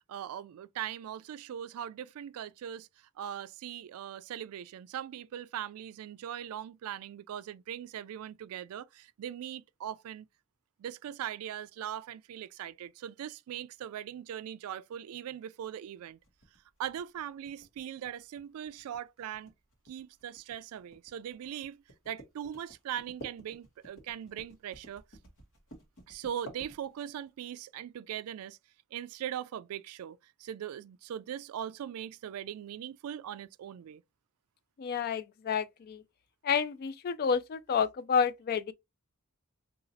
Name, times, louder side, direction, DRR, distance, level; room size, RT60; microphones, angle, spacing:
voice 1, 0.1-10.3 10.8-16.2 16.8-19.5 19.9-25.0 26.1-28.6 28.9-34.0, right 10 dB, 75° right, 0.3 m, -40 dB
sound 1, 16.2-27.3, right 1 dB, 60° left, 1.0 m, -52 dB
voice 2, 34.8-36.0 36.4-38.7, left 6 dB, 45° left, 0.3 m, -30 dB
4.0 x 2.4 x 2.5 m
head